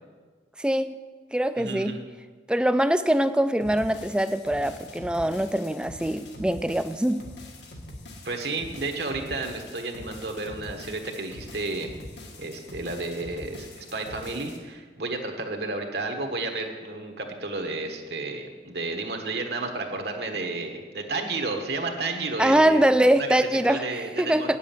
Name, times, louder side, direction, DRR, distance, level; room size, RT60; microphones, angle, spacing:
voice 1, 0.6-1.0 1.3-2.0 2.5-7.3 22.4-23.8 24.2-24.6, right 1 dB, 5° right, 11 dB, 0.3 m, -23 dB
voice 2, 1.6-2.0 8.2-11.9 12.4-22.9 23.2-24.6, right 3 dB, 65° right, 4 dB, 1.3 m, -32 dB
sound 1, 3.6-14.6, left 1 dB, 85° left, 1.7 m, -44 dB
8.3 x 7.5 x 8.8 m, 1.5 s
head